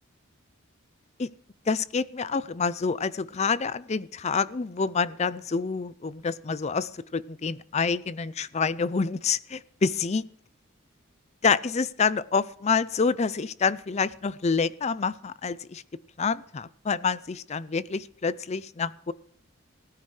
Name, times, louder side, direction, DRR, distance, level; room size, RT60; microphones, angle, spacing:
voice 1, 1.7-10.2 11.4-15.8 16.2-19.1, left 5 dB, 30° left, 18 dB, 0.4 m, -27 dB
16.5 x 14.0 x 3.2 m, 0.62 s
head